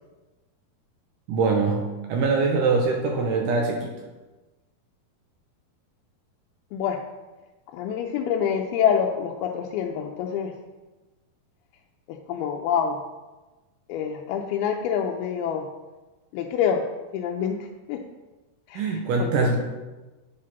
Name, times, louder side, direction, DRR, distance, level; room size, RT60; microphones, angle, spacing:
voice 1, 1.3-3.9 18.7-19.6, right 4 dB, 75° right, 1 dB, 2.1 m, -23 dB
voice 2, 6.7-7.0 7.7-10.5 12.1-13.0 13.9-15.7 16.3-16.8 17.1-18.0 18.7-18.8 19.2-19.3, left 8 dB, 85° left, 1 dB, 2.5 m, -26 dB
8.8 x 5.0 x 5.8 m, 1.1 s
omnidirectional pair, 4.4 m